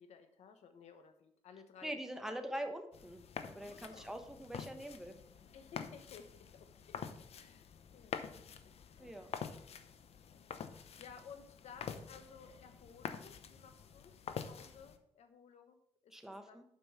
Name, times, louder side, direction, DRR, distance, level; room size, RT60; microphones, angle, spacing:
voice 1, 0.0-2.4 3.6-4.4 5.5-6.3 6.5-7.1 7.4-8.5 9.0-9.4 10.3-16.1 16.5-16.6, left 6 dB, 80° left, 8 dB, 1.1 m, -57 dB
voice 2, 1.8-5.2 9.0-9.3 16.1-16.6, right 1 dB, 5° right, 5 dB, 1.1 m, -44 dB
sound 1, 2.9-15.0, left 7 dB, 65° left, 0.7 m, -47 dB
7.7 x 5.4 x 5.7 m, 0.72 s
cardioid pair, 95°, 11 cm